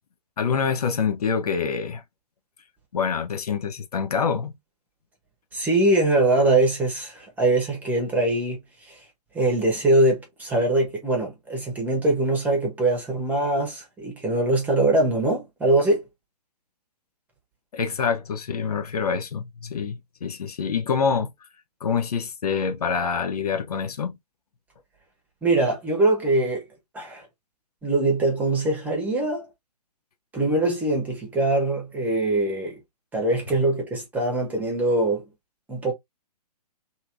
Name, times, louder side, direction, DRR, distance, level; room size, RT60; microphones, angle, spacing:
voice 1, 0.4-2.0 2.9-4.5 17.7-21.3 21.8-24.2, left 6 dB, 65° left, 0.7 m, -26 dB
voice 2, 5.5-9.0 9.3-16.0 25.4-26.7 26.9-27.2 27.8-29.5 30.3-32.8 33.1-35.2 35.7-35.9, right 2 dB, 10° right, 1.0 m, -22 dB
2.8 x 2.7 x 2.5 m
figure-of-eight pair, 130°, 21 cm